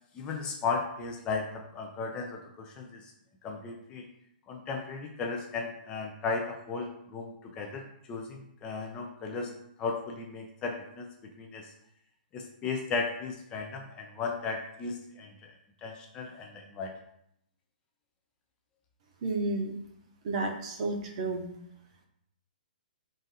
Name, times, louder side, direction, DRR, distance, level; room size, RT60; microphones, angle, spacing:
voice 1, 0.1-3.1 3.4-4.0 4.5-9.5 9.8-11.1 11.4-11.7 12.3-16.9, left 4 dB, 15° left, 2 dB, 0.3 m, -36 dB
voice 2, 19.2-19.7 20.2-21.5, right 2 dB, 40° right, 3 dB, 0.7 m, -31 dB
3.8 x 2.5 x 4.0 m, 0.76 s
hypercardioid pair, 160°, 5 cm